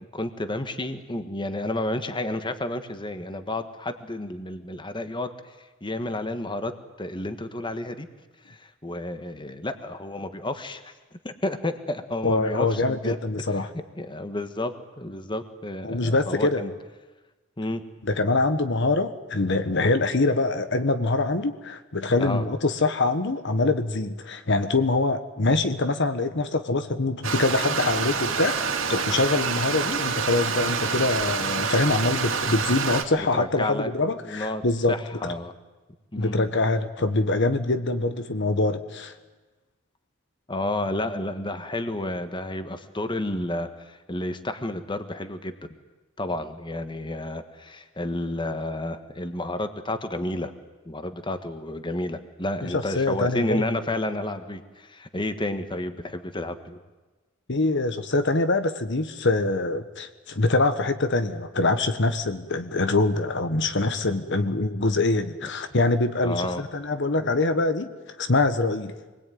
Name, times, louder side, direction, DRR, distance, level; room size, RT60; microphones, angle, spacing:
voice 1, 0.1-5.3 5.8-6.7 7.0-8.1 8.5-10.9 11.2-13.2 13.5-13.6 14.0-16.7 17.6-17.8 22.2-22.4 33.2-33.9 34.3-34.6 34.9-35.5 36.1-36.5 40.5-45.7 46.2-50.5 50.8-56.8 66.2-66.6, left 1 dB, 25° left, 9 dB, 1.5 m, -31 dB
voice 2, 12.2-13.7 15.8-16.6 18.0-34.9 35.2-35.3 36.2-39.1 52.6-53.6 57.5-67.9 68.2-68.9, left 2 dB, 60° left, 9 dB, 1.3 m, -24 dB
Stream, 27.2-33.0, right 5 dB, 70° right, 2.8 m, -27 dB
26.5 x 21.0 x 9.4 m, 1.2 s
head